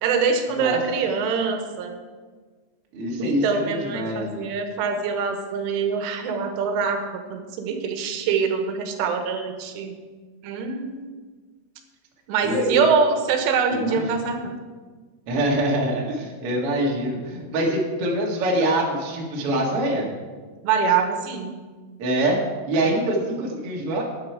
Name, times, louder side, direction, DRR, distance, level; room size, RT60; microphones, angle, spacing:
voice 1, 0.0-2.0 3.2-7.0 7.3-10.0 10.4-11.1 12.3-14.5 20.6-21.5, right 5 dB, 80° right, 5 dB, 3.5 m, -24 dB
voice 2, 2.9-4.5 12.4-12.8 13.7-14.3 15.3-20.1 22.0-22.4 22.7-24.0, right 1 dB, 50° right, -2 dB, 1.8 m, -24 dB
12.5 x 9.8 x 4.7 m, 1.4 s
omnidirectional pair, 5.7 m